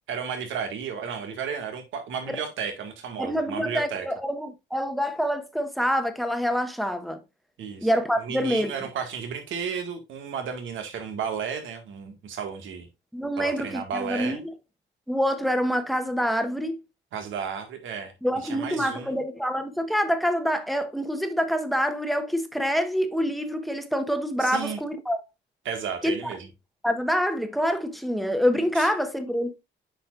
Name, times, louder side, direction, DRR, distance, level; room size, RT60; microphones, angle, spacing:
voice 1, 0.1-4.1 7.6-7.9 8.2-12.9 13.4-14.4 17.1-18.1 18.4-19.2 24.4-24.8 25.6-26.5 28.7-28.9, right 6 dB, 75° right, 1.8 m, -33 dB
voice 2, 3.2-7.2 7.8-8.7 13.1-14.4 15.1-16.8 18.2-25.2 26.0-26.3 26.8-29.6, equal, ahead, 1.1 m, -26 dB
8.5 x 5.2 x 2.4 m
cardioid pair, 90°, 20 cm